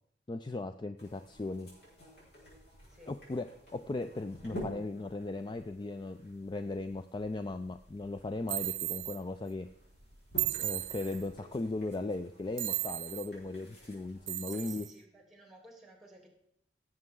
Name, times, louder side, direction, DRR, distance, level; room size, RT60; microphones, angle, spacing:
voice 1, 0.3-1.7 3.1-9.7 10.6-14.9, left 2 dB, 25° left, 9 dB, 0.3 m, -37 dB
sound 1, 1.0-14.8, equal, 65° left, 5.1 m, -51 dB
sound 2, 8.5-9.2 10.4-11.3 12.6-13.3 14.3-14.9, right 17 dB, 85° right, 0.4 m, -35 dB
voice 2, 14.5-16.3, equal, ahead, 0 dB, 2.8 m, -55 dB
17.0 x 7.6 x 3.8 m, 0.70 s
head